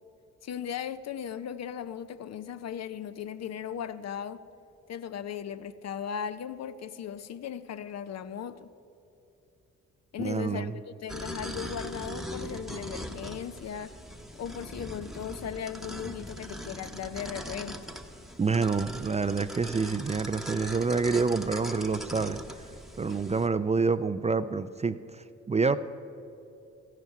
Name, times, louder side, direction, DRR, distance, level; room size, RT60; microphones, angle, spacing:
voice 1, 0.4-4.4 4.9-8.7 10.1-14.0 14.4-17.8, left 8 dB, 55° left, 12 dB, 0.6 m, -37 dB
voice 2, 10.2-10.7 18.4-22.4 23.0-25.8, right 4 dB, 20° right, 13 dB, 0.4 m, -27 dB
sound 1, 11.1-23.5, equal, ahead, 1.0 m, -40 dB
14.0 x 11.0 x 4.7 m, 2.8 s
supercardioid pair, 55°, 31 cm